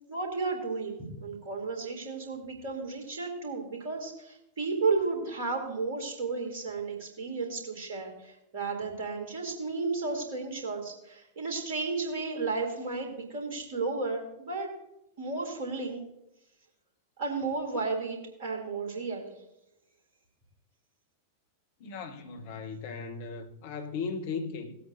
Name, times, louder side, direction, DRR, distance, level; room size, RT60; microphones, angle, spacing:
voice 1, 0.1-14.7 15.2-16.0 17.2-19.3, right 4 dB, 55° right, 3.0 m, -33 dB
voice 2, 21.8-24.8, left 5 dB, 50° left, 1.1 m, -37 dB
18.5 x 8.4 x 2.7 m
figure-of-eight pair, 90°, 0 cm